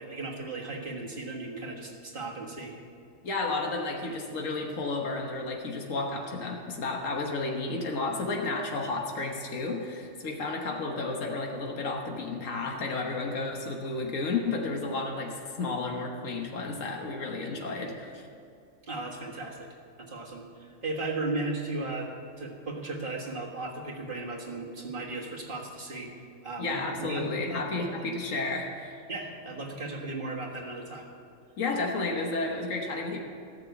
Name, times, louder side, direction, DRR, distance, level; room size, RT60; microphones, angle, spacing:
voice 1, 0.0-2.8 18.8-19.7 20.0-26.1 26.4-28.1 29.1-31.1, right 2 dB, 45° right, -1 dB, 1.8 m, -36 dB
voice 2, 3.2-18.3 26.6-29.0 31.6-33.2, left 3 dB, 85° left, 1 dB, 1.6 m, -32 dB
13.5 x 6.8 x 8.1 m, 2.4 s
omnidirectional pair, 1.3 m